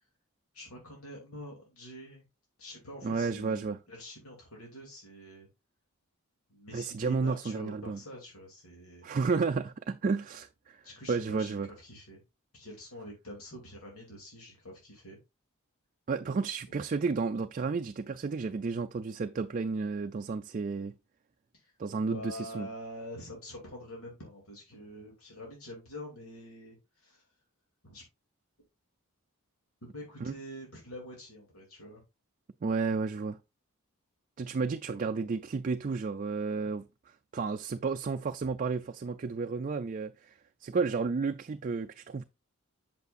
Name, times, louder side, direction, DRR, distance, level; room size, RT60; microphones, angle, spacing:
voice 1, 0.5-2.2 2.6-5.5 6.5-9.2 10.8-12.2 12.5-15.2 21.6-21.7 22.1-27.2 27.8-28.0 29.9-32.0, left 1 dB, 75° left, 2.7 m, -46 dB
voice 2, 3.0-3.8 6.7-8.0 9.0-11.7 16.1-20.9 21.8-22.7 30.2-30.3 32.6-33.4 34.4-36.9 37.3-40.3 40.6-42.2, right 4 dB, 40° right, 0.4 m, -32 dB
8.2 x 6.9 x 2.5 m
head